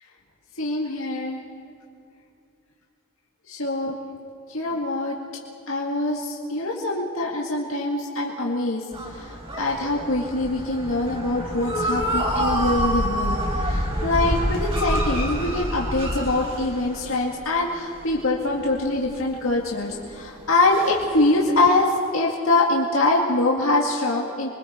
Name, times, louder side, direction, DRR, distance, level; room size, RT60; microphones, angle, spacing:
voice 1, 0.6-1.4 3.5-3.9 4.5-5.2 5.7-8.8 9.6-13.4 13.6-24.5, left 2 dB, 70° left, -2 dB, 2.1 m, -23 dB
sound 1, 8.9-17.4 17.7-20.2 20.6-21.3, equal, 30° right, 4.4 m, -27 dB
27.5 x 24.0 x 4.4 m, 2.4 s
head